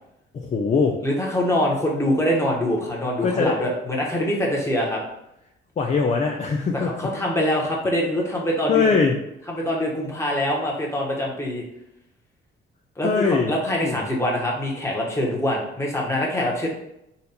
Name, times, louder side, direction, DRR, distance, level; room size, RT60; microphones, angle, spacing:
voice 1, 0.4-1.0 3.2-3.7 5.8-7.1 8.7-9.1 13.0-13.5 13.8-14.1, left 5 dB, 35° left, 2 dB, 0.5 m, -22 dB
voice 2, 1.0-5.0 6.7-8.9 9.5-11.6 13.0-16.7, left 1 dB, 15° left, -2 dB, 1.3 m, -24 dB
4.1 x 2.6 x 4.1 m, 0.81 s
cardioid pair, 90°, 20 cm